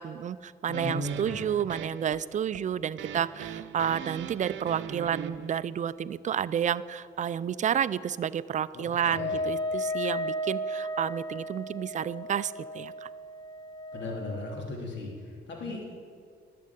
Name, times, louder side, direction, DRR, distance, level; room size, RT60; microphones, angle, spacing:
voice 1, 0.0-13.1, right 9 dB, 40° right, 15 dB, 0.4 m, -30 dB
voice 2, 0.7-1.3 8.7-9.4 13.9-16.0, left 2 dB, 65° left, -1 dB, 3.2 m, -37 dB
sound 1, 0.7-5.6, right 9 dB, 75° right, 0.7 m, -40 dB
Wind instrument woodwind instrument, 9.1-14.8, left 1 dB, 20° left, 1.0 m, -34 dB
12.0 x 7.7 x 8.0 m, 2.1 s
cardioid pair, 90°, 20 cm